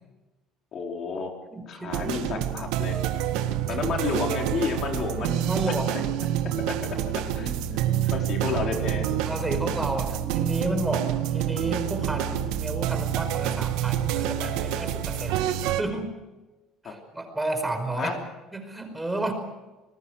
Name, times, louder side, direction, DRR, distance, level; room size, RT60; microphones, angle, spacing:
voice 1, 0.7-1.3 1.7-3.0 3.7-5.7 6.6-7.8 8.1-9.1 16.8-16.9 17.9-18.2, left 5 dB, 45° left, 2 dB, 4.3 m, -31 dB
voice 2, 1.5-2.2 3.5-3.8 5.4-6.0 8.0-8.1 8.4-8.5 9.2-16.1 16.8-18.1 18.5-19.3, right 2 dB, 10° right, 5 dB, 5.0 m, -32 dB
sound 1, 1.9-15.8, right 11 dB, 85° right, 1.8 m, -27 dB
sound 2, 2.8-4.0 4.6-8.1 8.4-9.1 9.7-11.7, right 7 dB, 45° right, 2.9 m, -46 dB
29.0 x 20.5 x 6.5 m, 1.1 s
cardioid pair, 130°, 0 cm